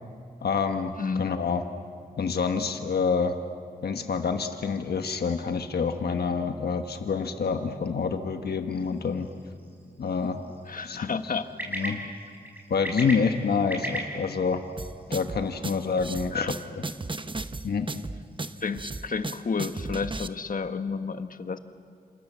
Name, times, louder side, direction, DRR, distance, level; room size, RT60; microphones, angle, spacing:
voice 1, 0.4-1.6 2.2-3.4 3.8-9.3 10.0-10.5 10.8-11.3 11.7-12.0 12.7-14.6 15.1-16.5 17.6-17.9, left 5 dB, 85° left, 6 dB, 1.3 m, -27 dB
sound 1, 8.7-20.4, equal, 10° right, 6.8 m, -41 dB
voice 2, 10.7-11.4 16.3-16.5 18.6-21.6, left 5 dB, 60° left, 9 dB, 1.4 m, -31 dB
sound 2, 14.8-20.3, right 3 dB, 30° right, 1.0 m, -35 dB
27.5 x 27.5 x 7.4 m, 2.1 s
cardioid pair, 60°, 16 cm